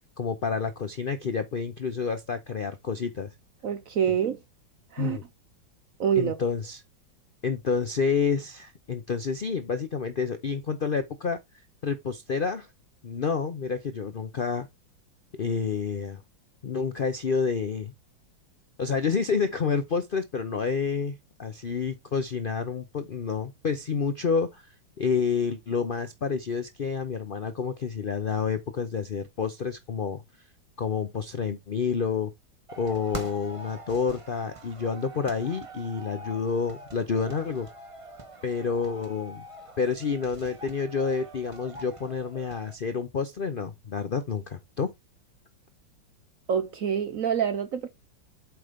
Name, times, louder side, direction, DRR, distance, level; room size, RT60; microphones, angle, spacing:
voice 1, 0.2-3.3 5.0-5.2 6.2-6.8 7.4-11.4 11.8-12.7 13.0-14.7 15.4-16.2 16.6-17.9 18.8-24.7 25.0-30.2 30.8-32.3 32.8-37.7 38.4-39.4 39.8-44.9, left 5 dB, 80° left, 0.4 m, -29 dB
voice 2, 3.6-4.4 4.9-5.2 6.0-6.4 46.5-47.9, right 8 dB, 60° right, 0.9 m, -26 dB
sound 1, 32.7-42.7, right 2 dB, 20° right, 1.0 m, -44 dB
8.0 x 3.3 x 5.1 m
omnidirectional pair, 2.0 m